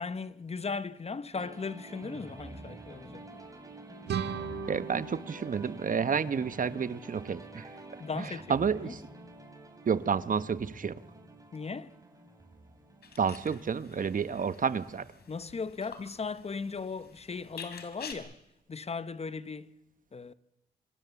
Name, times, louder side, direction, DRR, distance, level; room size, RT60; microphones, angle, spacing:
voice 1, 0.0-3.5 8.0-9.0 11.5-12.0 15.3-18.4 18.7-19.7 20.1-20.3, left 4 dB, 40° left, 0.9 m, -37 dB
sound 1, 1.3-15.1, right 2 dB, 20° right, 4.5 m, -48 dB
sound 2, 4.1-6.8, right 7 dB, 85° right, 1.6 m, -38 dB
voice 2, 4.7-7.7 8.5-9.0 9.9-10.9 13.2-15.1, right 6 dB, 55° right, 1.1 m, -30 dB
sound 3, 13.0-18.1, left 6 dB, 75° left, 3.4 m, -49 dB
26.0 x 21.5 x 7.1 m
cardioid pair, 65°, 17 cm